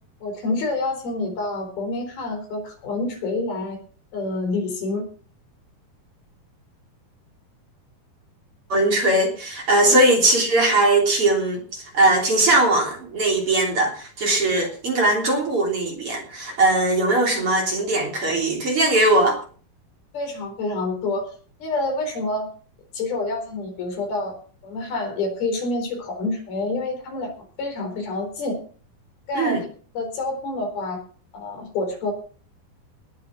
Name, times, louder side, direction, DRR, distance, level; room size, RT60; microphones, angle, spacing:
voice 1, 0.2-3.8 4.1-5.0 9.8-10.0 20.1-21.3 21.6-22.5 22.9-24.3 24.6-27.3 27.6-28.6 29.3-29.6 29.9-31.0 31.3-32.1, left 2 dB, 75° left, 3 dB, 6.3 m, -27 dB
voice 2, 8.7-19.4 29.3-29.6, right 2 dB, 35° right, 1 dB, 4.0 m, -20 dB
19.0 x 7.6 x 6.0 m, 0.43 s
omnidirectional pair, 4.3 m